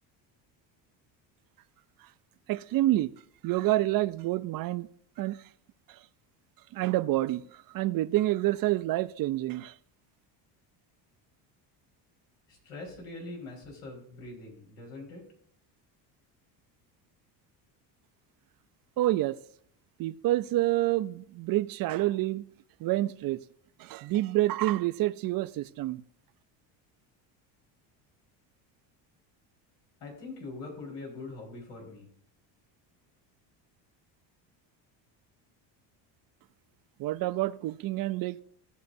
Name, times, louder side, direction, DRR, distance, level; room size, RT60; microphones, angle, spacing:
voice 1, 2.5-3.1 3.4-4.9 5.2-5.4 5.9-6.0 6.7-9.7 19.0-19.4 20.0-22.4 22.8-23.4 23.8-26.0 37.0-38.4, right 16 dB, 50° right, 0.5 m, -28 dB
voice 2, 12.5-15.2 30.0-32.1, left 3 dB, 85° left, 4.3 m, -43 dB
17.0 x 6.5 x 2.6 m
supercardioid pair, 105°, 47 cm